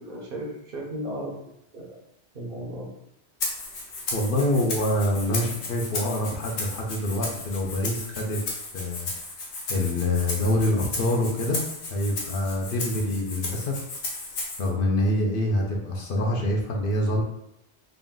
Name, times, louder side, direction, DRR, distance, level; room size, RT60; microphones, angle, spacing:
voice 1, 0.0-1.4 1.7-2.0 2.3-2.9, right 1 dB, 55° right, -1 dB, 0.9 m, -35 dB
Rattle (instrument), 3.4-14.7, left 2 dB, 75° left, 1.1 m, -34 dB
voice 2, 4.1-8.4 8.7-9.1 9.7-11.6 11.9-13.8 14.6-17.2, left 1 dB, 55° left, -1 dB, 0.8 m, -25 dB
3.9 x 2.5 x 3.6 m, 0.81 s
omnidirectional pair, 1.2 m